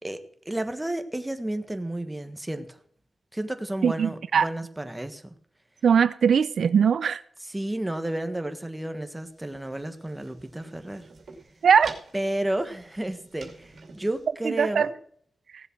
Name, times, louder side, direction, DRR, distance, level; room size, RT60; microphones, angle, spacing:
voice 1, 0.0-2.8 3.3-5.3 7.4-11.1 12.1-14.9, right 1 dB, 10° right, 1.4 m, -32 dB
voice 2, 3.8-4.5 5.8-7.2 11.6-12.0 14.4-14.9, right 7 dB, 80° right, 0.5 m, -20 dB
sound 1, 9.2-14.3, right 4 dB, 60° right, 2.6 m, -48 dB
17.0 x 7.7 x 6.0 m
wide cardioid pair, 120°, 0 cm